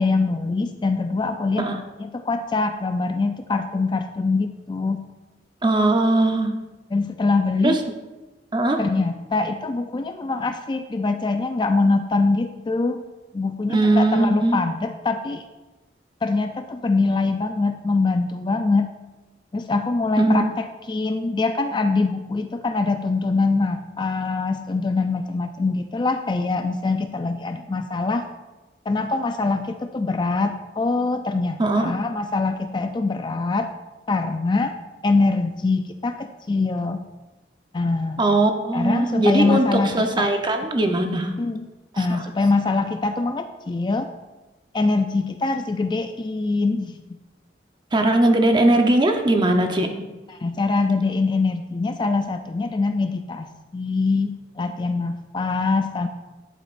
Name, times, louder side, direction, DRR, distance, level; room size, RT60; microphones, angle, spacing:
voice 1, 0.0-5.0 6.9-7.8 8.8-13.0 13.3-15.4 16.2-18.9 19.5-28.2 28.9-33.7 34.1-34.7 35.0-37.0 37.7-38.2 38.7-40.3 41.4-41.7 42.0-44.1 44.7-47.0 50.3-53.5 53.7-56.1, left 3 dB, 25° left, 7 dB, 0.3 m, -23 dB
voice 2, 5.6-6.5 7.6-7.8 8.5-8.8 13.7-14.6 20.2-20.4 31.6-31.9 38.2-41.3 41.9-42.2 47.9-50.1, right 2 dB, 25° right, 5 dB, 0.7 m, -20 dB
11.0 x 8.2 x 2.5 m, 1.1 s
head